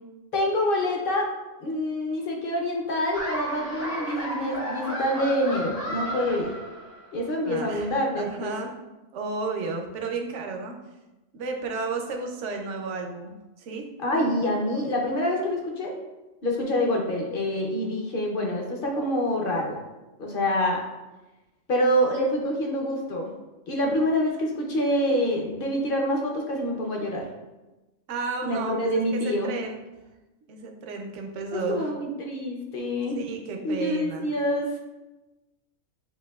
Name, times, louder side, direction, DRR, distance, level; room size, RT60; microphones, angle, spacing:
voice 1, 0.3-1.3 1.6-6.5 7.1-8.5 14.0-15.9 16.4-19.8 20.2-20.9 21.7-23.3 23.7-27.2 28.4-29.5 31.5-33.2 33.6-34.8, equal, 50° left, 0 dB, 0.8 m, -26 dB
Laughter, 3.1-7.2, equal, 80° left, 2.0 m, -33 dB
voice 2, 7.4-8.7 9.1-10.8 11.3-13.9 28.1-29.8 30.5-31.9 33.1-34.3, right 4 dB, 65° right, 3 dB, 0.9 m, -33 dB
7.8 x 2.6 x 2.3 m, 1.1 s
omnidirectional pair, 1.4 m